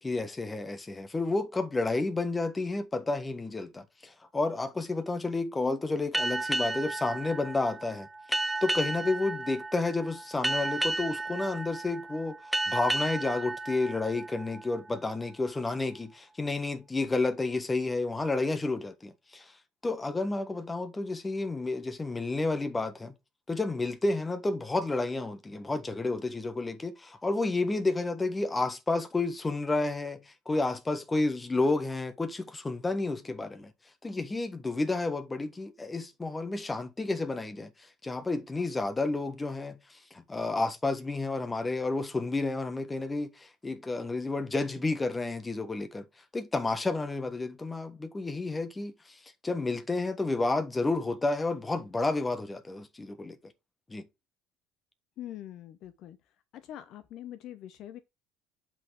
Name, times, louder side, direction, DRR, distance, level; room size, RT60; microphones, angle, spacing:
voice 1, 0.0-12.4 12.7-19.5 19.8-23.1 23.5-33.7 34.0-46.1 46.3-53.5 53.9-54.1, left 3 dB, 20° left, 1.5 m, -31 dB
sound 1, 6.1-15.3, right 2 dB, 5° right, 0.7 m, -33 dB
voice 2, 55.2-56.2 56.5-58.0, left 12 dB, 55° left, 0.7 m, -43 dB
7.6 x 6.1 x 3.5 m
figure-of-eight pair, 55°, 0 cm